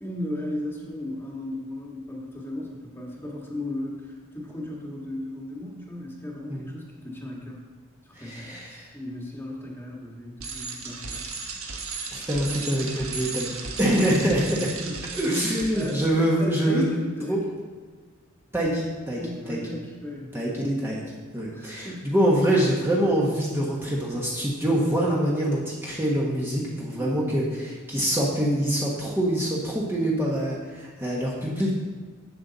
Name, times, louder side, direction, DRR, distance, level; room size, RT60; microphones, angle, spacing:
voice 1, 0.0-7.6 8.0-11.2 14.1-14.5 14.8-15.2 15.7-17.5 19.2-20.8 21.5-22.1 27.0-27.4, left 1 dB, 10° left, -2 dB, 1.5 m, -36 dB
voice 2, 8.1-8.9 12.1-13.5 13.8-14.4 15.1-16.8 17.3-17.4 18.5-19.2 19.5-19.6 20.3-21.0 21.3-31.7, right 1 dB, 10° right, -5 dB, 1.2 m, -25 dB
Bicycle, 10.4-16.1, right 4 dB, 80° right, 1.3 m, -35 dB
10.5 x 7.7 x 4.0 m, 1.4 s
head